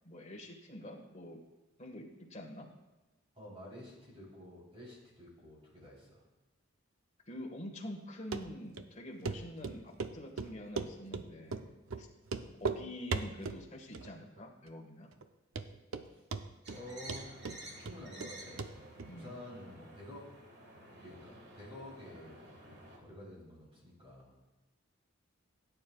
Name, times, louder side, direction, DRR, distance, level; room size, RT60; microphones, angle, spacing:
voice 1, 0.0-1.4 1.8-2.7 7.3-11.6 12.0-12.1 12.6-15.1 19.1-19.4, left 1 dB, 35° left, 0 dB, 1.4 m, -46 dB
voice 2, 3.3-6.2 16.1-16.2 16.7-17.3 17.8-18.7 19.1-20.3 21.0-24.4, left 1 dB, 30° right, -6 dB, 3.6 m, -50 dB
Run, 8.3-8.4 8.8-8.9 9.2-9.4 9.6-10.1 10.4-11.2 11.5-11.6 11.9-12.0 12.3-12.8 13.1-13.6 13.9-14.4 14.7-14.8 15.2-15.3 15.6-16.1 16.3-16.8 17.1-18.3 18.6-18.7 19.0-19.1, right 4 dB, 80° right, 0.6 m, -37 dB
sound 1, 16.6-23.0, right 1 dB, 50° right, 1.7 m, -52 dB
17.0 x 9.2 x 2.3 m, 1.1 s
head